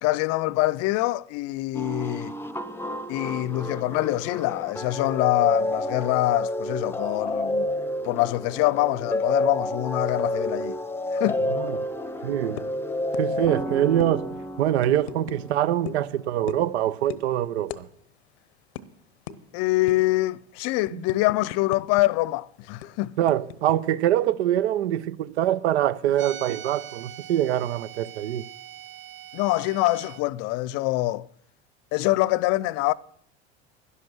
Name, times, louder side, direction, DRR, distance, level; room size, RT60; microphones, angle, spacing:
voice 1, 0.0-2.3 3.1-7.7 8.0-10.8 11.1-11.4 19.5-23.2 29.3-31.3 31.9-32.9, left 18 dB, 50° left, 0.5 m, -25 dB
sound 1, 1.7-16.7, left 1 dB, 5° left, 0.8 m, -30 dB
voice 2, 12.2-12.6 13.2-17.9 20.9-21.0 23.2-28.4, right 12 dB, 70° right, 0.7 m, -24 dB
sound 2, 12.6-12.8 13.1-13.3 13.5-13.7 14.0-14.1 14.8-15.4 15.9-16.1 16.5-16.8 17.1-17.3 17.7-17.8 18.1-18.3 18.8-18.9 19.3-19.4 19.9-20.1 20.6-22.0 22.3-22.4 22.8-23.8, left 10 dB, 70° left, 0.9 m, -37 dB
sound 3, 26.1-30.2, right 12 dB, 35° right, 0.7 m, -42 dB
11.0 x 11.0 x 6.1 m
hypercardioid pair, 75°, 34 cm